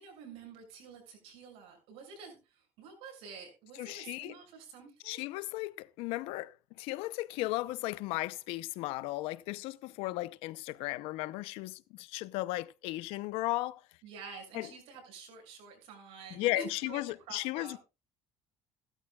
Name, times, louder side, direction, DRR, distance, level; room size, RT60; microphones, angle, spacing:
voice 1, 0.0-5.2 14.0-17.0 17.3-17.8, right 5 dB, 80° right, 6.9 m, -49 dB
voice 2, 3.8-4.4 5.0-13.8 14.5-14.7 16.3-17.8, left 19 dB, 90° left, 0.6 m, -35 dB
16.5 x 12.5 x 2.3 m
cardioid pair, 130°, 10 cm